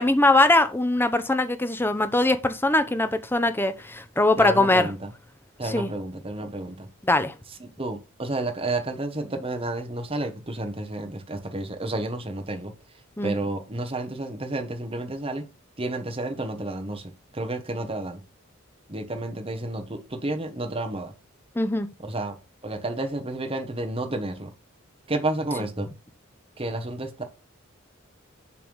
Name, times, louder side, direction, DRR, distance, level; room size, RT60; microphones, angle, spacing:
voice 1, 0.0-4.9 5.6-5.9 7.0-7.3 13.2-13.3 21.6-21.9, left 2 dB, 10° left, 0.7 m, -21 dB
voice 2, 4.4-5.1 5.6-6.9 7.6-12.7 13.2-15.5 15.8-18.2 18.9-21.1 22.0-22.4 22.6-24.5 25.1-25.9 26.6-27.2, right 2 dB, 25° right, 1.1 m, -31 dB
7.1 x 3.5 x 6.2 m
head